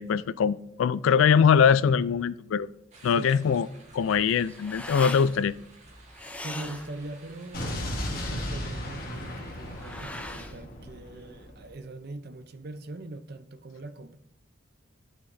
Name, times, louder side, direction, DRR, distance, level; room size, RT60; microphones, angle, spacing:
voice 1, 0.0-2.7 3.0-3.7 3.9-5.5, left 7 dB, 75° left, 0.3 m, -22 dB
sound 1, 2.9-10.1, right 2 dB, 35° right, 1.5 m, -54 dB
voice 2, 3.1-3.6 6.4-14.2, right 2 dB, 50° right, 0.6 m, -41 dB
sound 2, 3.8-11.7, left 1 dB, 5° left, 0.5 m, -42 dB
Explosion, 7.5-11.6, left 1 dB, 45° left, 1.5 m, -35 dB
11.5 x 5.9 x 2.6 m
head